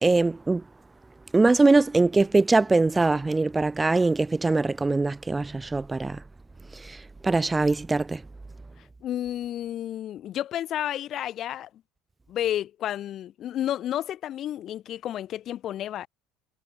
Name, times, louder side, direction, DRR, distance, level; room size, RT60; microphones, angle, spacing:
voice 1, 0.0-0.6 1.3-6.2 7.2-8.2, right 3 dB, 15° right, 0.3 m, -22 dB
voice 2, 9.0-11.7 12.3-16.1, left 11 dB, 45° left, 0.5 m, -31 dB
supercardioid pair, 120°, 0 cm